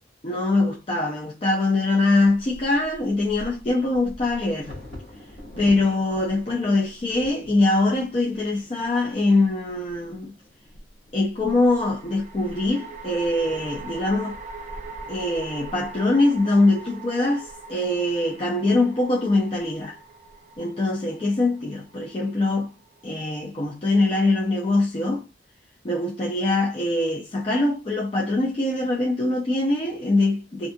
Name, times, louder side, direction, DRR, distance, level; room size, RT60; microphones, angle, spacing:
voice 1, 0.2-4.7 5.6-10.3 11.1-14.4 15.1-20.0 20.6-22.7 23.0-25.3 25.8-30.7, left 2 dB, 30° left, 0.4 m, -23 dB
Bird vocalization bird call bird song / Wind / Thunder, 2.4-18.1 18.8-18.9 19.2-19.6 20.1-20.6, left 1 dB, 50° left, 1.0 m, -45 dB
sound 1, 8.9-9.5 11.9-23.2, right 4 dB, 45° right, 0.5 m, -42 dB
2.5 x 2.3 x 2.5 m
head